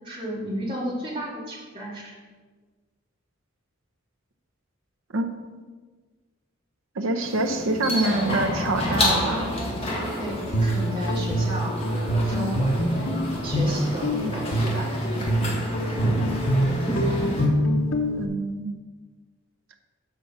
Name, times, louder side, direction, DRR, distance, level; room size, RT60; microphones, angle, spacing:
voice 1, 0.0-2.2 10.2-13.1 13.4-15.4, equal, 25° right, -4 dB, 2.1 m, -33 dB
voice 2, 5.1-5.7 7.0-9.5 18.2-18.7, right 2 dB, 75° right, 5 dB, 0.8 m, -26 dB
sound 1, 7.2-17.5, left 1 dB, 30° left, 1.6 m, -29 dB
Guitar, 10.3-18.3, equal, 85° left, 0.9 m, -25 dB
7.5 x 5.1 x 6.7 m, 1.4 s
head